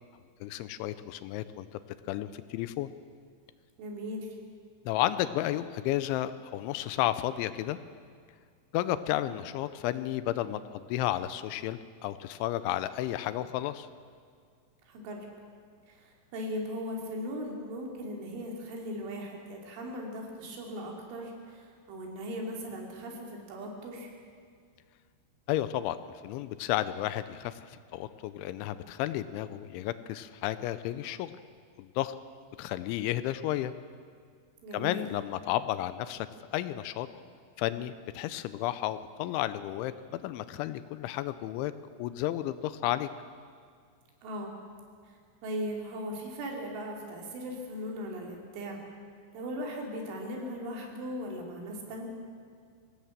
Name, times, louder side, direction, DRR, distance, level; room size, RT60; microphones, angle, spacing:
voice 1, 0.4-1.7 2.1-2.9 4.9-7.8 8.7-13.9 25.5-26.0 26.2-31.3 31.8-32.1 32.6-33.7 34.7-36.3 36.5-37.1 37.6-43.1, left 13 dB, 85° left, 13 dB, 3.0 m, -32 dB
voice 2, 3.8-4.4 14.9-15.3 15.9-24.1 34.6-35.0 44.2-44.5 45.1-48.8 49.3-52.1, equal, 80° right, 0 dB, 5.4 m, -38 dB
24.0 x 17.0 x 7.3 m, 2.1 s
omnidirectional pair, 5.5 m